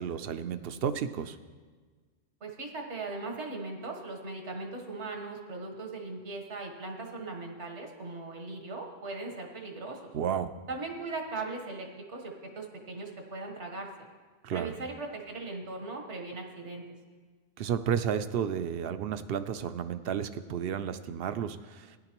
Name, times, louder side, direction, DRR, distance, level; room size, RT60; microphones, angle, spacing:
voice 1, 0.0-1.4 10.1-10.5 14.4-14.7 17.6-22.0, right 8 dB, 65° right, 11 dB, 0.7 m, -32 dB
voice 2, 2.4-10.1 10.7-13.9 14.5-16.8, right 3 dB, 85° right, 3 dB, 1.6 m, -39 dB
16.0 x 10.5 x 3.0 m, 1.5 s
omnidirectional pair, 1.2 m